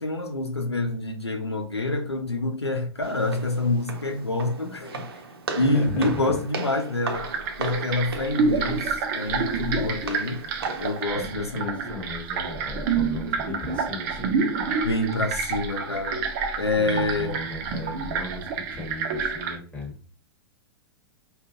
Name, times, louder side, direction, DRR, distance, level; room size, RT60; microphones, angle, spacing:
voice 1, 0.0-5.1 5.5-7.3 7.6-10.4 10.8-11.8 14.8-16.2 16.6-17.4, left 2 dB, 90° left, 0.7 m, -27 dB
Walk footsteps, 3.0-11.0, right 4 dB, 65° right, 0.9 m, -37 dB
voice 2, 5.6-6.3 11.1-14.4 16.8-20.1, left 2 dB, 10° left, 1.5 m, -35 dB
sound 1, 7.1-19.6, right 5 dB, 45° right, 0.7 m, -28 dB
5.1 x 2.5 x 2.5 m
figure-of-eight pair, 100°, 13 cm